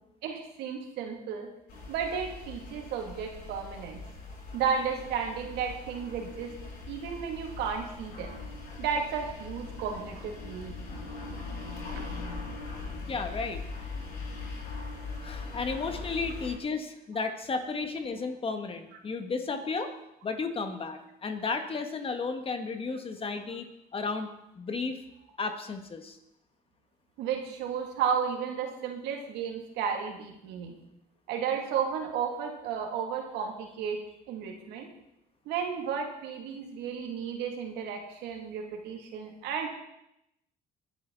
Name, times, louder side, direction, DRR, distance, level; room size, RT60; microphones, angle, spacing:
voice 1, 0.2-1.5 1.9-4.0 4.5-6.5 6.9-8.4 8.8-10.8 27.2-30.8 31.3-34.0 34.3-34.9 35.5-39.7, right 7 dB, 90° right, 2 dB, 2.6 m, -33 dB
sound 1, 1.7-16.6, left 3 dB, 75° left, 7.0 m, -41 dB
voice 2, 13.1-13.6 15.2-19.9 20.2-23.7 23.9-25.0 25.4-26.2, left 4 dB, 35° left, 6 dB, 1.8 m, -33 dB
22.5 x 11.0 x 4.1 m, 0.83 s
cardioid pair, 110°, 17 cm